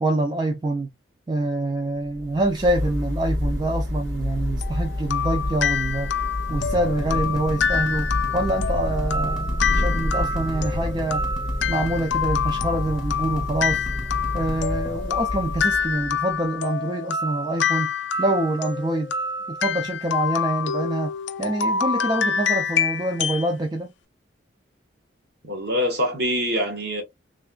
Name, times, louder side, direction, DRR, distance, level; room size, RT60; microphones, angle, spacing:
voice 1, 0.0-0.9 1.3-6.2 6.5-11.2 11.7-13.8 14.3-19.1 19.5-21.1 21.4-23.9, right 1 dB, 20° right, 0.4 m, -26 dB
Thunder / Rain, 2.0-16.4, left 1 dB, 85° right, 1.9 m, -29 dB
sound 1, 4.6-23.5, left 6 dB, 70° left, 0.4 m, -27 dB
sound 2, 6.5-15.0, equal, ahead, 0.8 m, -38 dB
voice 2, 25.4-27.0, equal, 55° right, 1.3 m, -24 dB
3.4 x 2.3 x 2.2 m
head